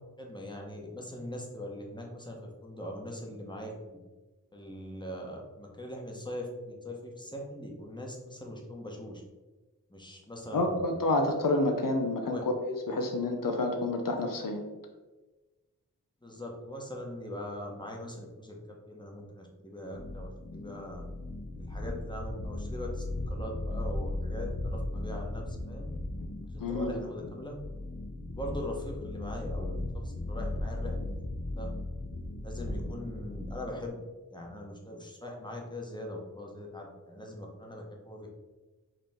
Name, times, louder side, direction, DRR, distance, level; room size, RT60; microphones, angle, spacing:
voice 1, 0.2-4.0 4.5-9.2 9.9-11.3 12.2-12.4 16.2-21.0 21.6-25.9 26.5-27.6 28.3-31.1 31.5-31.7 32.4-34.0 34.3-38.3, left 1 dB, 15° left, -1 dB, 1.1 m, -41 dB
voice 2, 10.5-14.6 26.6-26.9, left 2 dB, 85° left, 4 dB, 0.6 m, -29 dB
sound 1, 19.9-33.9, left 2 dB, 45° left, 0.7 m, -37 dB
4.9 x 3.0 x 3.6 m, 1.2 s
wide cardioid pair, 45°, 32 cm